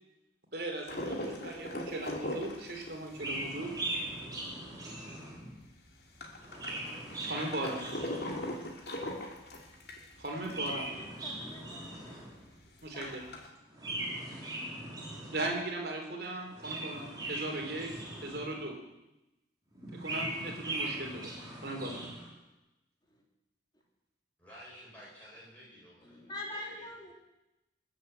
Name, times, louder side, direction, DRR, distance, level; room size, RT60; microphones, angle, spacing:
voice 1, 0.5-3.7 7.2-7.9 10.2-10.9 12.8-13.3 15.3-17.9 18.2-18.7 19.9-21.4 21.6-22.0, right 2 dB, 60° right, 3.3 m, -38 dB
sound 1, 0.9-4.9 5.3-5.4 5.5-10.9 11.3-11.4 11.6-11.7 12.2-13.5, left 1 dB, 60° left, 2.5 m, -40 dB
Chirp tweet, 3.1-5.6 6.3-8.7 10.3-12.5 13.7-15.6 16.4-18.7 19.7-22.3, right 1 dB, 20° right, 3.8 m, -40 dB
voice 2, 10.8-12.2 12.9-13.3 23.1-23.2 26.0-27.1, left 1 dB, 25° left, 3.2 m, -45 dB
voice 3, 24.4-26.9, equal, 10° left, 7.7 m, -53 dB
21.0 x 8.0 x 7.8 m
head